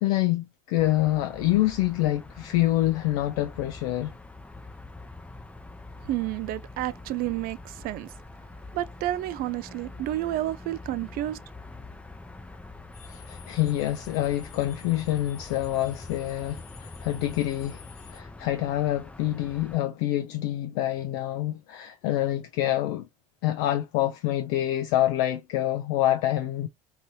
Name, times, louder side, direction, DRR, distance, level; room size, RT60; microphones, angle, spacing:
voice 1, 0.0-4.1 13.0-17.8 18.1-23.1 23.4-26.7, left 14 dB, 65° left, 0.5 m, -26 dB
sound 1, 0.8-19.8, left 2 dB, 5° left, 0.5 m, -44 dB
voice 2, 6.0-8.1 8.7-11.4, right 14 dB, 50° right, 0.4 m, -30 dB
sound 2, 12.9-18.2, left 8 dB, 85° left, 1.2 m, -52 dB
2.9 x 2.6 x 3.0 m
hypercardioid pair, 75°, 19 cm